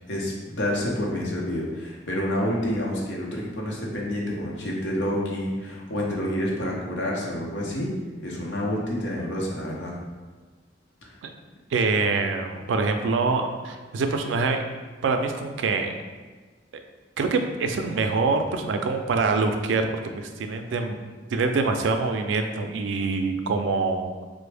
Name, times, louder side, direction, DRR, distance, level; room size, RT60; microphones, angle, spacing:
voice 1, 0.1-7.9 8.2-10.0 11.0-11.2, left 1 dB, 70° left, -3 dB, 0.7 m, -28 dB
voice 2, 11.7-14.6 15.0-15.9 17.2-19.9 20.2-21.0 21.3-24.2, right 4 dB, 75° right, 6 dB, 0.3 m, -25 dB
3.3 x 2.0 x 3.3 m, 1.4 s
head